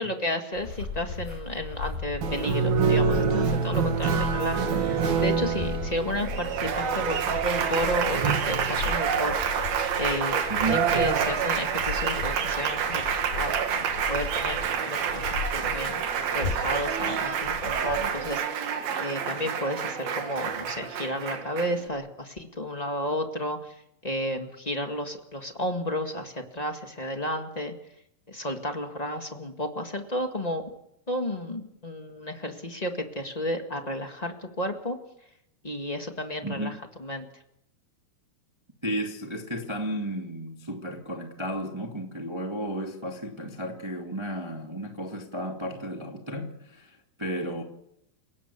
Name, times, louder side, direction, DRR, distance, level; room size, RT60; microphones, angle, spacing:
voice 1, 0.0-9.4 10.0-10.4 10.7-16.0 16.3-18.7 19.0-23.8 24.0-27.7 28.3-30.7 31.1-35.0 35.6-37.3, left 1 dB, 35° left, 0.6 m, -32 dB
sound 1, 0.5-18.3, left 4 dB, 65° left, 6.0 m, -37 dB
Applause, 2.2-21.9, right 7 dB, 85° right, 3.8 m, -27 dB
voice 2, 10.5-10.8 36.4-36.8 38.8-47.6, right 1 dB, 10° right, 1.6 m, -33 dB
29.5 x 17.5 x 7.0 m
omnidirectional pair, 4.1 m